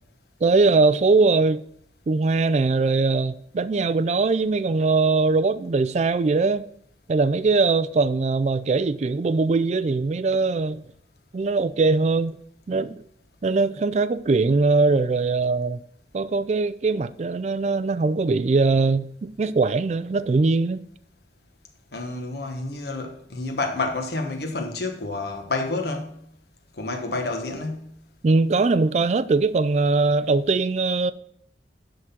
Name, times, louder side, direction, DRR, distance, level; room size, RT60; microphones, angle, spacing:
voice 1, 0.4-1.6 2.1-6.6 7.1-10.8 11.3-12.4 12.7-13.0 13.4-15.8 16.1-20.8 28.2-31.1, right 3 dB, 40° right, 0.3 m, -21 dB
voice 2, 21.9-26.2 26.8-27.9, left 2 dB, 65° left, 1.3 m, -29 dB
10.5 x 3.8 x 5.7 m
head